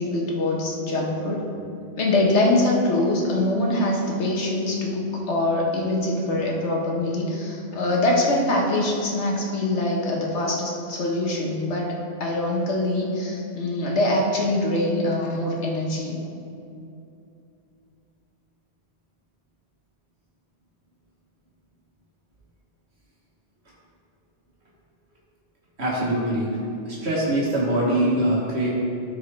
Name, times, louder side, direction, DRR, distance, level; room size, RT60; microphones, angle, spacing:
voice 1, 0.0-1.4 2.0-11.9 12.2-16.2, left 1 dB, 85° left, -1 dB, 1.5 m, -23 dB
voice 2, 25.8-26.6 26.8-28.7, right 1 dB, 70° right, -6 dB, 1.5 m, -23 dB
13.0 x 4.6 x 3.3 m, 2.7 s
omnidirectional pair, 1.1 m